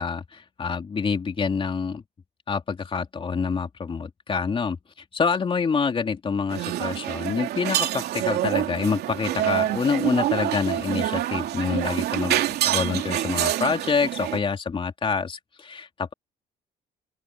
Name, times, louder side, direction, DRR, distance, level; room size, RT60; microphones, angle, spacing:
voice 1, 0.0-2.0 2.5-4.8 5.1-16.1, left 5 dB, 30° left, 3.2 m, -27 dB
sound 1, 6.5-14.4, right 13 dB, 75° right, 2.9 m, -26 dB
open air
cardioid pair, 110°, 17 cm